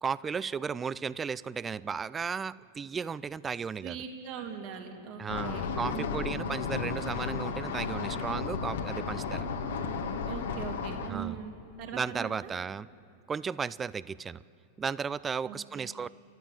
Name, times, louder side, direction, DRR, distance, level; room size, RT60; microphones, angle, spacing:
voice 1, 0.0-4.0 5.2-9.5 11.1-11.4 11.9-12.9 13.3-14.4 14.8-16.1, right 6 dB, 20° right, 20 dB, 0.4 m, -34 dB
voice 2, 3.8-6.3 10.2-12.5 15.4-15.9, right 7 dB, 45° right, 2 dB, 3.0 m, -41 dB
sound 1, 5.3-11.1, left 5 dB, 60° left, 1.8 m, -34 dB
29.5 x 12.5 x 7.2 m, 2.6 s
figure-of-eight pair, 90°, 0 cm